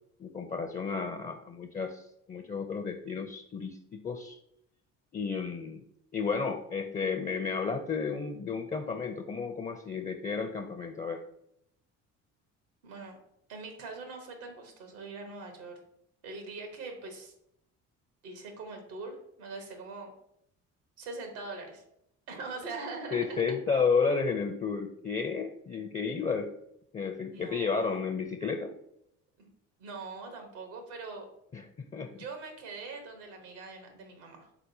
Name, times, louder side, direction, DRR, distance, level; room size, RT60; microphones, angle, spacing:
voice 1, 0.2-4.4 5.1-5.8 6.1-11.2 23.1-26.5 26.9-28.7 31.5-32.2, left 5 dB, 20° left, 6 dB, 0.5 m, -32 dB
voice 2, 12.8-13.2 13.5-15.8 16.2-17.3 18.2-20.1 21.0-21.8 22.3-23.4 27.3-28.0 29.4-29.5 29.8-31.3 32.1-34.5, right 3 dB, 85° right, 4 dB, 1.1 m, -42 dB
4.9 x 4.0 x 2.7 m, 0.75 s
hypercardioid pair, 60°, 36 cm